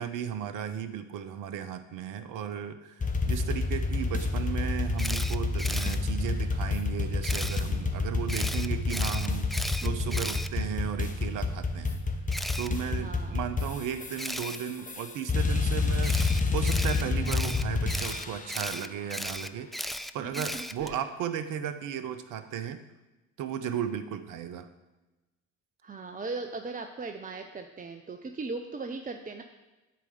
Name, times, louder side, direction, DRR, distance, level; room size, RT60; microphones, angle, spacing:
voice 1, 0.0-12.0 12.6-16.2 16.5-22.8 23.4-24.7, right 8 dB, 60° right, 11 dB, 1.0 m, -35 dB
sound 1, 3.0-18.6, left 3 dB, 20° left, 1.6 m, -29 dB
Camera, 5.0-6.0 7.2-7.6 8.3-11.1 12.3-12.7 14.2-14.6 16.0-21.0, equal, ahead, 0.3 m, -36 dB
voice 2, 9.8-10.3 12.9-13.4 20.2-21.0 25.8-29.4, right 3 dB, 20° right, 5 dB, 0.9 m, -39 dB
10.5 x 4.9 x 7.9 m, 1.1 s
hypercardioid pair, 55°, 37 cm